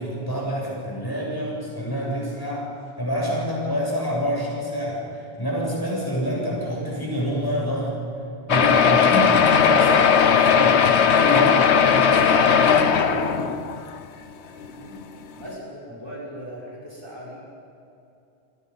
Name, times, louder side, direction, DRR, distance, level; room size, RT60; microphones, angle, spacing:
voice 1, 0.0-7.9 8.5-13.3, equal, 20° left, -4 dB, 7.4 m, -27 dB
sound 1, 8.5-13.9 14.6-14.7 15.0-15.1 15.4-15.5, left 7 dB, 75° left, 1.2 m, -17 dB
voice 2, 15.4-17.4, equal, 20° right, -6 dB, 6.2 m, -38 dB
29.0 x 23.5 x 5.6 m, 2.7 s
omnidirectional pair, 1.1 m